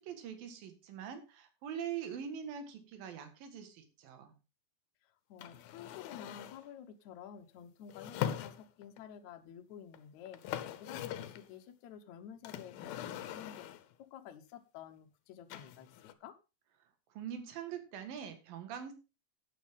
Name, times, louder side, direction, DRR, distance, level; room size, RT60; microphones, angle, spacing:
voice 1, 0.0-4.3 17.1-18.9, right 8 dB, 75° right, 7 dB, 3.4 m, -43 dB
voice 2, 5.0-13.7 14.0-16.4, left 9 dB, 70° left, 5 dB, 1.9 m, -51 dB
sound 1, 5.4-6.7 7.9-9.0 9.9-10.0 10.3-11.5 12.4-13.9 15.5-16.1, left 11 dB, 85° left, 2.6 m, -41 dB
11.5 x 9.2 x 3.6 m, 0.30 s
omnidirectional pair, 4.2 m